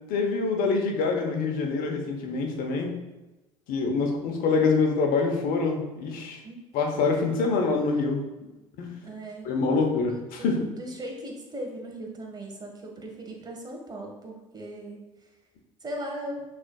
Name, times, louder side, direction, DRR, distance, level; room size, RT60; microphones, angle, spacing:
voice 1, 0.1-2.9 3.7-6.4 6.7-8.2 8.8-9.0 9.4-10.7, left 4 dB, 60° left, 3 dB, 0.9 m, -25 dB
voice 2, 9.0-9.5 10.4-15.0 15.8-16.4, right 1 dB, 25° right, 0 dB, 1.4 m, -38 dB
6.1 x 3.5 x 2.3 m, 1.1 s
hypercardioid pair, 60°, 16 cm